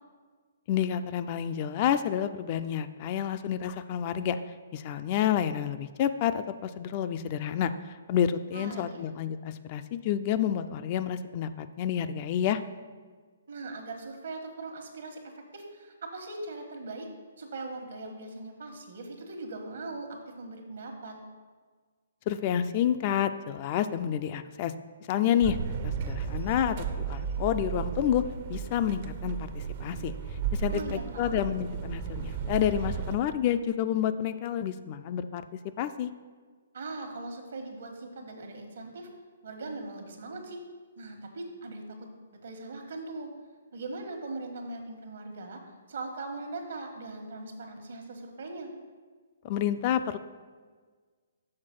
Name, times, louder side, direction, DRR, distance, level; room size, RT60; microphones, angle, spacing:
voice 1, 0.7-4.4 4.7-7.7 8.1-12.6 22.3-24.7 25.1-25.6 25.8-28.2 28.5-30.1 30.5-35.4 35.8-36.1 49.4-50.2, left 10 dB, 35° left, 11 dB, 0.3 m, -29 dB
voice 2, 8.5-9.1 13.5-15.2 15.5-17.1 17.4-21.2 30.7-31.4 36.7-39.1 39.4-40.6 41.0-42.1 42.4-43.3 43.7-45.6 45.9-48.7, right 2 dB, 70° right, 4 dB, 1.3 m, -40 dB
sound 1, 25.4-33.2, right 7 dB, 45° right, 0.5 m, -34 dB
6.5 x 4.2 x 6.0 m, 1.5 s
hypercardioid pair, 150°, 0 cm